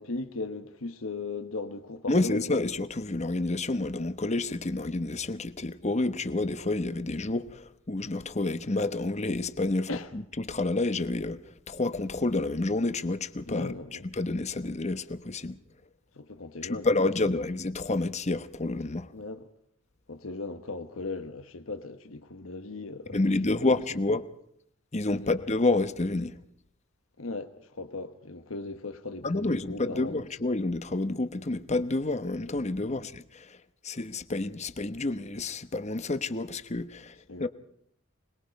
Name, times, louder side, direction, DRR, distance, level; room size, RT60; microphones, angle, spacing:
voice 1, 0.0-2.5 9.9-10.1 13.5-14.0 16.1-16.9 17.2-17.5 19.1-19.5 20.1-24.0 25.1-25.3 27.2-30.3 32.8-33.0 37.3-37.5, left 3 dB, 80° left, 1.2 m, -38 dB
voice 2, 2.1-11.4 11.7-13.7 14.1-15.6 16.6-19.1 23.1-24.3 24.9-26.4 29.2-33.6 33.8-37.1 37.4-37.5, left 2 dB, 35° left, 1.0 m, -29 dB
26.0 x 20.5 x 5.3 m
head